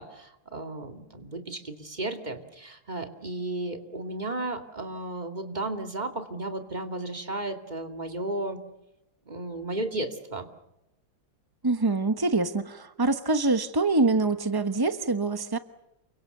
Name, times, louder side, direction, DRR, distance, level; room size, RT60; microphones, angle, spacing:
voice 1, 0.0-8.6 9.3-10.5, right 2 dB, 20° right, 5 dB, 2.5 m, -34 dB
voice 2, 11.6-15.6, right 3 dB, 35° right, 9 dB, 0.3 m, -25 dB
29.0 x 24.0 x 6.8 m, 0.89 s
omnidirectional pair, 2.3 m